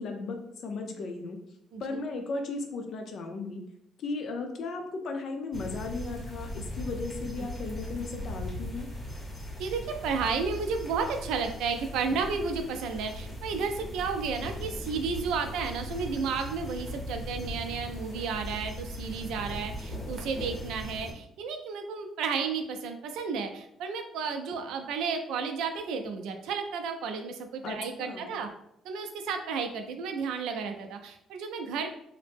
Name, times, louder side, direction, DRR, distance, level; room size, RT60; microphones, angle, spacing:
voice 1, 0.0-1.4 1.8-3.6 4.0-8.9 27.6-28.4, left 3 dB, 55° left, 4 dB, 0.5 m, -36 dB
sound 1, 5.5-21.1, left 1 dB, 10° left, 0.7 m, -39 dB
voice 2, 9.6-28.5 28.8-31.9, right 5 dB, 85° right, 5 dB, 0.4 m, -32 dB
2.7 x 2.0 x 3.4 m, 0.76 s
cardioid pair, 125°, 0 cm